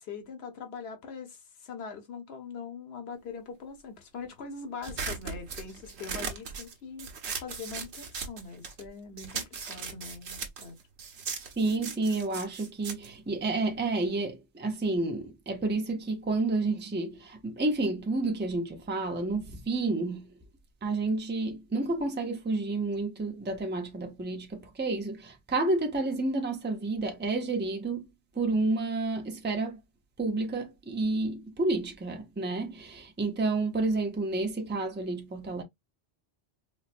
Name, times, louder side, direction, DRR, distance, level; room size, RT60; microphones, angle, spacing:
voice 1, 0.0-7.1 7.4-10.8 11.3-11.4, left 5 dB, 65° left, 1.2 m, -42 dB
sound 1, 4.8-8.9 9.2-14.0, right 5 dB, 75° right, 1.1 m, -38 dB
voice 2, 11.6-20.4 20.8-28.1 28.3-29.8 30.2-35.6, right 2 dB, 10° right, 0.6 m, -30 dB
4.5 x 2.2 x 2.5 m
omnidirectional pair, 1.1 m